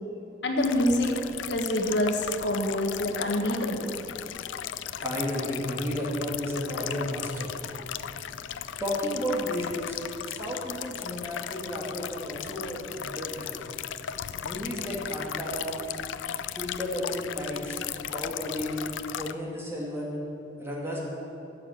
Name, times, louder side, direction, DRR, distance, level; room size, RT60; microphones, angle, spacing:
voice 1, 0.4-1.1 1.5-3.9, left 1 dB, 70° left, 2 dB, 1.5 m, -26 dB
sound 1, 0.6-19.3, left 9 dB, 85° left, 0.5 m, -36 dB
voice 2, 5.0-7.5 8.8-10.0 10.3-13.7 14.4-15.8 16.5-17.8 18.0-18.8 19.1-20.2 20.6-21.0, equal, 15° right, -4 dB, 2.4 m, -33 dB
13.0 x 8.9 x 7.4 m, 2.8 s
head